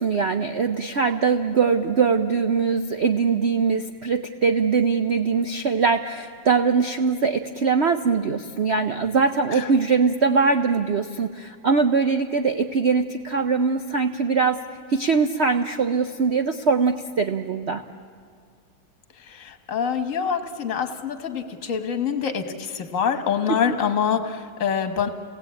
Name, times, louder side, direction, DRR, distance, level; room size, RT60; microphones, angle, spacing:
voice 1, 0.0-14.6 14.9-17.8 23.5-23.6, right 5 dB, 85° right, 7 dB, 0.5 m, -22 dB
voice 2, 19.2-25.1, left 7 dB, 45° left, 7 dB, 1.7 m, -25 dB
29.0 x 18.5 x 8.5 m, 2.1 s
omnidirectional pair, 2.2 m